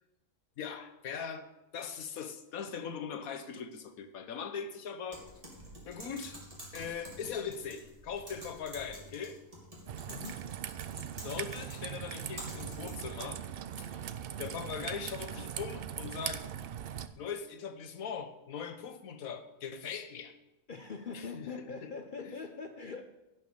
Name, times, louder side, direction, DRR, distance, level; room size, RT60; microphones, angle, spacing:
voice 1, 0.6-1.5 1.7-5.2 5.9-6.4 6.7-9.4 11.2-13.4 13.8-14.1 14.4-16.5 17.2-20.3 21.1-21.5 21.8-21.9 22.2-22.3, left 6 dB, 85° left, 9 dB, 1.4 m, -40 dB
Typing, 5.1-13.2, right 1 dB, 25° right, 2.8 m, -49 dB
Raindrop / Trickle dribble, 9.9-17.1, right 9 dB, 60° right, 0.6 m, -40 dB
voice 2, 10.1-10.5 20.7-23.0, left 4 dB, 45° left, 6 dB, 0.7 m, -42 dB
11.0 x 6.1 x 7.0 m, 0.96 s
omnidirectional pair, 1.4 m